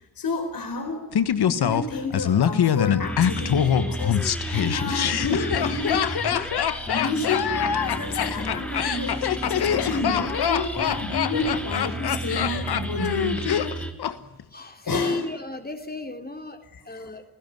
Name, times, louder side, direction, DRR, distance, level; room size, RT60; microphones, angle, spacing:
voice 1, 0.2-1.1 1.4-6.1 6.9-13.5 14.9-15.2 16.7-17.1, left 3 dB, 65° left, 6 dB, 4.2 m, -30 dB
Laughter, 1.1-14.1 14.4-14.5, left 9 dB, 85° left, 1.4 m, -24 dB
sound 1, 3.0-13.9, right 1 dB, 5° left, 4.2 m, -33 dB
voice 2, 14.2-17.2, left 3 dB, 25° left, 6 dB, 3.4 m, -34 dB
29.5 x 16.5 x 9.3 m, 0.93 s
cardioid pair, 75°, 38 cm